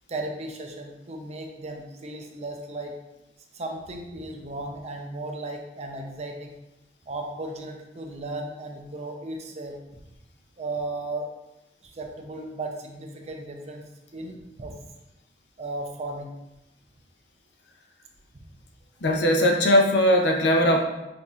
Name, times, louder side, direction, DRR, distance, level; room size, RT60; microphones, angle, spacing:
voice 1, 0.1-3.0 3.5-6.5 7.1-9.8 10.6-11.3 11.8-13.8 14.1-14.8 15.6-16.3, right 2 dB, 40° right, 2 dB, 0.5 m, -35 dB
voice 2, 19.0-20.8, equal, 75° left, 3 dB, 0.6 m, -19 dB
5.7 x 2.7 x 2.4 m, 0.94 s
head